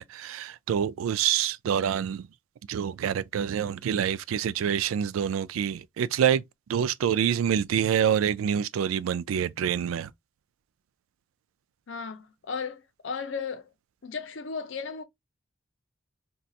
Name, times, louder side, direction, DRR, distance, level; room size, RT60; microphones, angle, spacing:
voice 1, 0.0-2.3 2.7-6.4 6.7-10.1, right 8 dB, 80° right, 0.3 m, -26 dB
voice 2, 11.9-13.7 14.0-15.0, left 5 dB, 65° left, 0.6 m, -35 dB
4.0 x 2.3 x 2.4 m
head